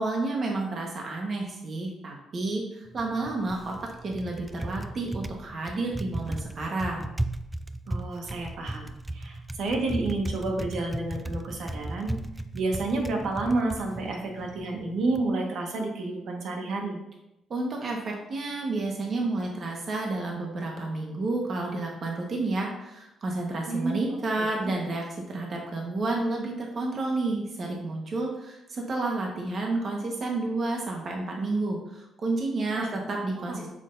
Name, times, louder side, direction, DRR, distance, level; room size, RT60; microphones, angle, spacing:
voice 1, 0.0-3.7 4.0-7.1 17.5-33.7, right 2 dB, 50° right, 0 dB, 1.3 m, -30 dB
Typing, 2.9-15.3, right 1 dB, 10° right, 0.4 m, -36 dB
voice 2, 7.9-12.1 12.5-17.0 23.7-24.1 24.4-24.7 32.8-32.9 33.4-33.7, right 2 dB, 70° right, 1 dB, 1.5 m, -30 dB
7.4 x 6.4 x 2.7 m, 0.89 s
cardioid pair, 90°, 0 cm